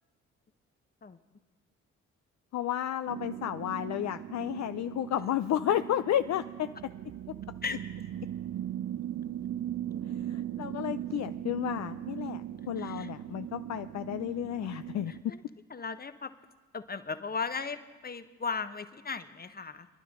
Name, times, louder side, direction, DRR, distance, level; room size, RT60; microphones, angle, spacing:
voice 1, 2.5-6.7 10.3-15.1, left 11 dB, 50° left, 11 dB, 0.6 m, -32 dB
sound 1, 3.1-15.2, right 11 dB, 50° right, 0.8 m, -39 dB
voice 2, 12.8-13.1 15.1-15.4 15.7-16.3 16.7-19.9, left 5 dB, 25° left, 11 dB, 1.1 m, -37 dB
23.5 x 11.5 x 3.8 m, 1.2 s
hypercardioid pair, 40°, 35 cm